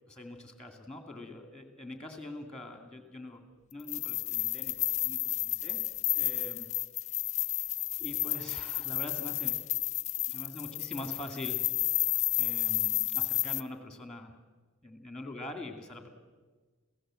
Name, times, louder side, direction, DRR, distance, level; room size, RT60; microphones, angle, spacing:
voice 1, 0.1-3.4 3.7-5.8 6.1-6.7 7.5-7.7 8.0-9.7 10.3-11.8 12.4-14.4 14.8-16.1, left 1 dB, 5° left, 6 dB, 2.5 m, -44 dB
sound 1, 3.8-13.6, left 16 dB, 35° left, 0.6 m, -31 dB
27.0 x 16.5 x 7.7 m, 1.4 s
head